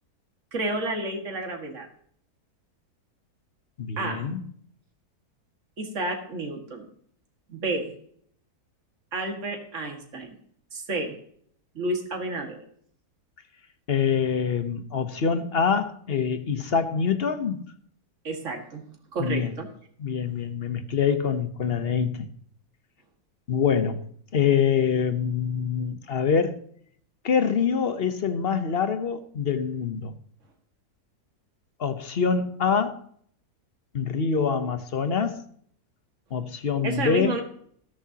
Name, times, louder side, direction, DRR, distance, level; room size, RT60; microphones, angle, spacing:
voice 1, 0.5-1.9 4.0-4.2 5.8-6.9 7.5-7.9 9.1-10.3 10.7-11.2 11.8-12.6 18.2-18.8 19.1-19.7 36.8-37.4, right 2 dB, 50° right, 2.3 m, -30 dB
voice 2, 3.8-4.4 13.9-17.7 19.2-19.5 20.0-22.3 23.5-24.0 24.3-26.6 27.2-30.1 31.8-33.0 33.9-35.4 36.3-37.4, left 6 dB, 45° left, 1.1 m, -25 dB
13.5 x 13.0 x 2.9 m
omnidirectional pair, 1.7 m